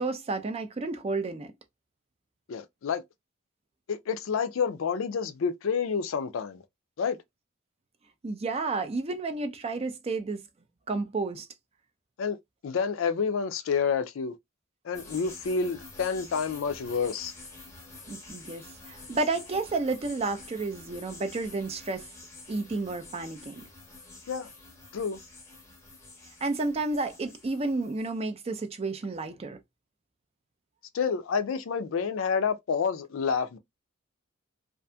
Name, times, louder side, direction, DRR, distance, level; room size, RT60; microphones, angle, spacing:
voice 1, 0.0-1.5 8.2-10.4 10.9-11.5 18.1-22.1 22.5-23.7 26.4-29.6, right 3 dB, 30° right, 0.4 m, -31 dB
voice 2, 2.5-3.0 3.9-6.6 7.0-7.2 12.2-12.4 12.6-14.3 14.8-17.3 24.3-24.5 24.9-25.2 30.9-33.6, left 6 dB, 70° left, 0.4 m, -29 dB
sound 1, 14.9-28.2, left 3 dB, 15° left, 0.7 m, -48 dB
2.7 x 2.4 x 2.2 m
head